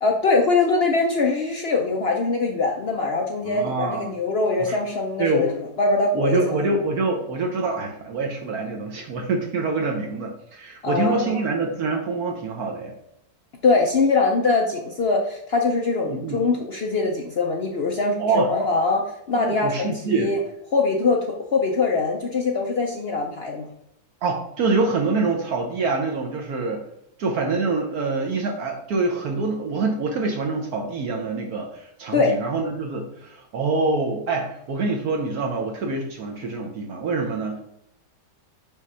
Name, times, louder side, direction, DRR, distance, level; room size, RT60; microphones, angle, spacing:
voice 1, 0.0-5.5 5.8-6.7 10.8-11.4 13.6-20.4 20.7-21.2 21.5-23.7 32.1-32.3, left 3 dB, 65° left, 1 dB, 0.6 m, -22 dB
voice 2, 3.4-4.1 4.6-4.8 5.2-5.5 6.1-12.9 16.1-16.4 18.2-18.5 19.4-20.3 24.2-26.8 27.2-37.6, right 3 dB, 65° right, 2 dB, 1.2 m, -25 dB
5.5 x 3.1 x 5.5 m, 0.76 s
omnidirectional pair, 1.8 m